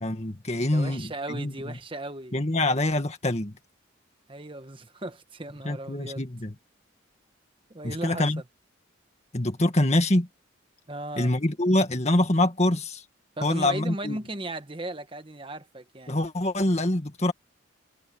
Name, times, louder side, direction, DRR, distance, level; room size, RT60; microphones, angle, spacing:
voice 1, 0.0-1.7 2.3-3.5 5.6-6.5 7.8-8.4 9.3-10.3 11.2-13.0 13.4-14.2 16.1-17.3, left 1 dB, 35° left, 2.0 m, -25 dB
voice 2, 0.7-2.3 4.3-6.2 7.7-8.3 10.9-11.4 13.4-16.2, right 2 dB, 25° right, 1.3 m, -36 dB
head